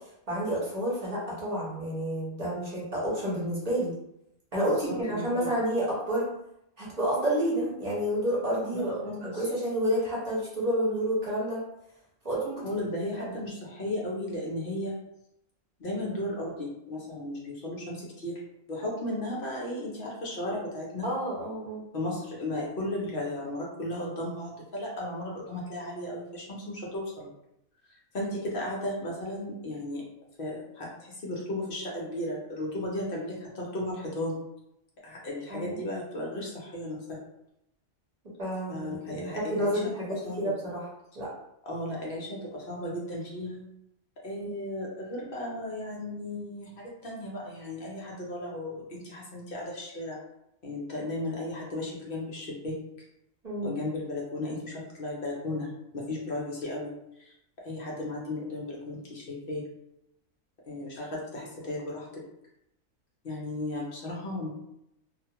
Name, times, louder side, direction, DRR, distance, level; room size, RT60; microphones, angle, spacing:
voice 1, 0.3-3.9 4.5-6.3 6.8-11.6 12.2-12.6 13.2-13.3 21.0-21.9 35.5-35.8 38.4-40.8 41.1-41.3 44.4-44.5 53.4-53.8, equal, 35° right, -6 dB, 0.8 m, -29 dB
voice 2, 4.7-5.5 8.7-9.5 12.6-14.9 15.8-18.4 18.7-21.1 21.9-27.3 28.1-30.0 30.4-34.4 35.0-37.2 38.7-39.9 40.2-40.5 41.6-43.7 44.2-50.2 50.6-52.8 53.6-55.7 55.9-56.9 57.2-57.3 57.6-59.6 60.7-62.1 63.2-64.5, left 1 dB, 55° left, -3 dB, 0.7 m, -35 dB
2.4 x 2.2 x 2.8 m, 0.82 s
omnidirectional pair, 1.4 m